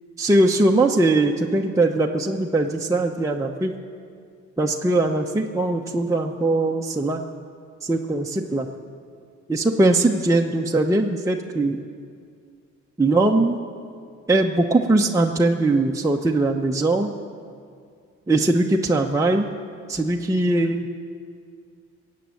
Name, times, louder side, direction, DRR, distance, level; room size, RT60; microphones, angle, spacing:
voice 1, 0.2-3.7 4.6-7.2 7.8-8.7 9.5-11.8 13.0-13.6 14.3-17.1 18.3-19.5 19.9-21.1, right 2 dB, 10° right, 0 dB, 0.8 m, -21 dB
22.0 x 8.5 x 7.8 m, 2.2 s
cardioid pair, 90°, 30 cm